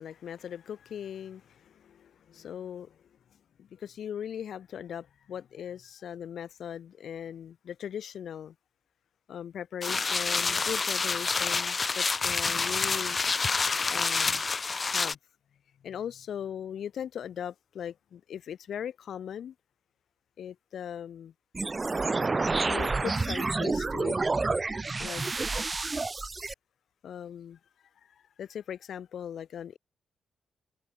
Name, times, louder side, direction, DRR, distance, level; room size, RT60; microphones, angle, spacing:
voice 1, 0.0-3.1 3.6-8.5 9.3-13.2 13.9-14.5 14.9-15.2 15.8-19.5 20.4-21.3 22.6-24.2 25.0-25.2 27.0-27.6 28.0-29.8, left 9 dB, 70° left, 7.3 m, -39 dB
sound 1, 9.8-15.2, left 4 dB, 30° left, 5.4 m, -28 dB
sound 2, 21.5-26.5, right 3 dB, 25° right, 2.2 m, -29 dB
cardioid pair, 115°, 0 cm